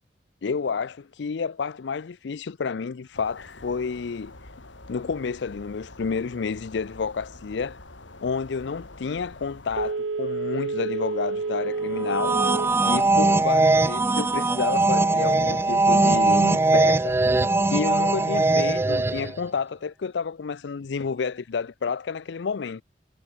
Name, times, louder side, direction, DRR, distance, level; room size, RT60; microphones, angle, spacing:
voice 1, 0.4-4.3 4.9-7.8 8.2-12.4 12.8-17.3 17.7-22.8, left 5 dB, 65° left, 0.5 m, -30 dB
sound 1, 3.1-9.9, left 2 dB, 90° left, 3.8 m, -46 dB
Telephone, 9.7-12.8 13.2-13.3, right 4 dB, 90° right, 0.7 m, -29 dB
sound 2, 12.0-19.4, right 2 dB, 15° right, 0.3 m, -21 dB
head